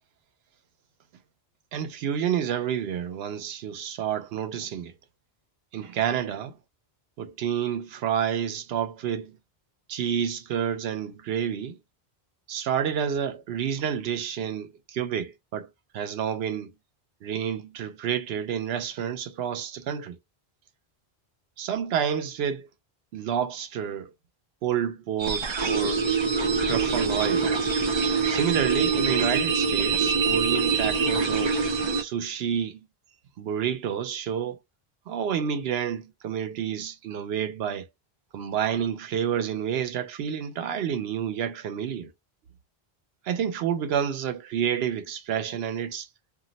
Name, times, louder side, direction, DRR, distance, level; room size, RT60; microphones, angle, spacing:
voice 1, 1.7-4.9 5.7-6.6 7.2-9.4 9.9-11.8 12.5-15.7 15.9-16.7 17.2-20.2 21.6-22.7 23.1-24.1 24.6-26.0 26.7-27.5 28.3-31.6 32.0-32.8 33.4-34.6 35.1-37.9 38.3-42.1 43.2-46.1, right 8 dB, 80° right, 0.8 m, -29 dB
sound 1, 25.2-32.0, right 4 dB, 40° right, 0.4 m, -24 dB
2.5 x 2.0 x 3.8 m
omnidirectional pair, 1.0 m